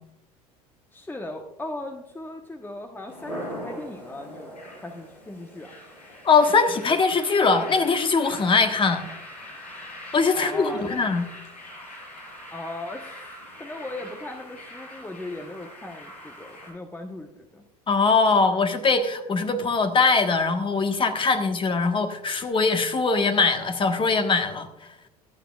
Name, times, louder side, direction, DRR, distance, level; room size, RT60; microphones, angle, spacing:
voice 1, 0.9-5.7 10.3-11.2 12.5-17.6, left 1 dB, 10° left, 4 dB, 1.2 m, -38 dB
sound 1, 3.1-16.7, left 1 dB, 85° left, 5.2 m, -42 dB
voice 2, 6.2-9.0 10.1-11.2 17.9-24.7, left 4 dB, 25° left, 6 dB, 1.5 m, -21 dB
23.5 x 9.1 x 2.5 m, 0.92 s
figure-of-eight pair, 70°, 20 cm